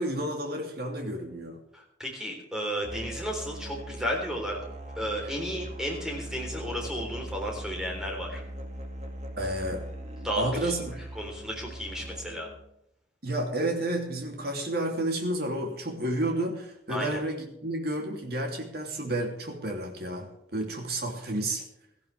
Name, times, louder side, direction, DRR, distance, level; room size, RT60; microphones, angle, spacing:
voice 1, 0.0-1.6 9.4-9.8 10.4-11.0 13.2-21.6, right 1 dB, 55° right, 2 dB, 2.9 m, -31 dB
voice 2, 1.7-4.6 5.0-8.4 10.2-10.7 11.2-12.5 16.9-17.2, equal, 5° right, 0 dB, 3.7 m, -33 dB
Musical instrument, 2.8-12.6, right 1 dB, 35° right, 2.2 m, -40 dB
17.0 x 14.5 x 3.4 m, 0.79 s
head